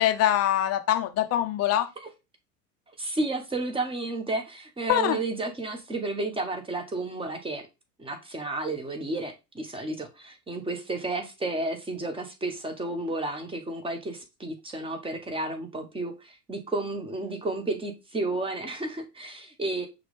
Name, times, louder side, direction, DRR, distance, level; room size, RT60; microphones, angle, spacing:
voice 1, 0.0-1.9 4.9-5.2, left 12 dB, 30° left, 0.7 m, -23 dB
voice 2, 3.0-7.6 8.0-19.9, right 2 dB, 10° right, 1.0 m, -32 dB
6.1 x 2.4 x 3.3 m
hypercardioid pair, 80°, 48 cm